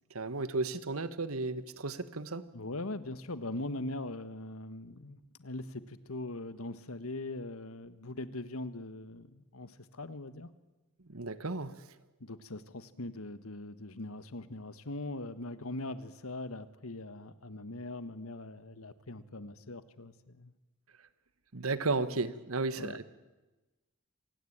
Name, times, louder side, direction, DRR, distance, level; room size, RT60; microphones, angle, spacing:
voice 1, 0.1-2.4 11.1-11.7 21.5-23.0, right 3 dB, 85° right, 14 dB, 1.4 m, -34 dB
voice 2, 2.5-10.5 12.2-20.5 22.8-23.0, left 2 dB, 90° left, 13 dB, 1.5 m, -41 dB
26.5 x 18.0 x 8.8 m, 1.1 s
head